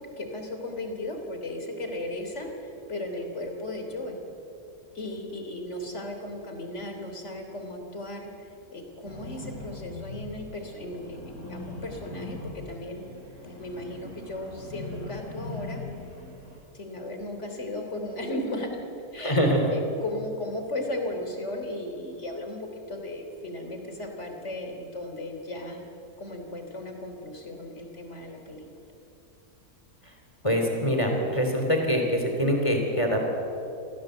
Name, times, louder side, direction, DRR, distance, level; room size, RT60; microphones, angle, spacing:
voice 1, 0.2-2.5 2.9-4.2 4.9-13.0 13.4-15.8 16.7-18.8 19.1-25.8 26.2-28.7, left 1 dB, 50° left, 3 dB, 3.6 m, -36 dB
sound 1, 9.0-16.6, left 3 dB, 75° left, 5.5 m, -41 dB
voice 2, 19.2-19.7 30.4-33.2, equal, 20° left, 2 dB, 3.5 m, -24 dB
27.0 x 17.5 x 7.9 m, 2.8 s
omnidirectional pair, 1.6 m